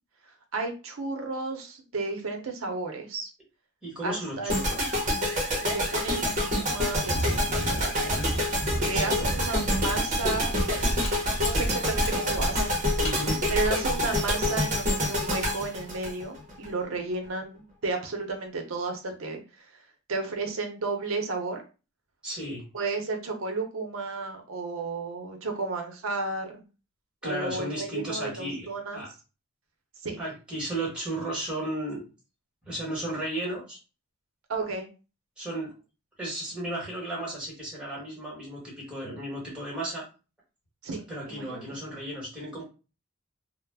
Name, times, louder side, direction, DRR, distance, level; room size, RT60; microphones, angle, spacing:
voice 1, 0.5-3.3 4.0-4.7 5.5-8.3 8.8-10.6 11.3-12.7 13.5-19.7 20.1-21.6 22.7-26.6 27.2-29.0 30.0-30.2 34.5-34.9 40.8-41.6, right 3 dB, 80° right, 4 dB, 0.7 m, -33 dB
voice 2, 3.8-4.8 8.9-9.3 13.0-13.4 22.2-22.7 27.2-28.7 28.9-29.1 30.2-32.0 32.6-33.8 35.4-35.7 36.2-40.1 41.1-42.6, right 1 dB, 5° right, -4 dB, 1.2 m, -34 dB
sound 1, 4.5-16.7, left 1 dB, 40° right, 0.8 m, -27 dB
Mechanisms, 7.0-14.1, equal, 30° left, 0.9 m, -32 dB
2.3 x 2.1 x 3.4 m, 0.32 s
head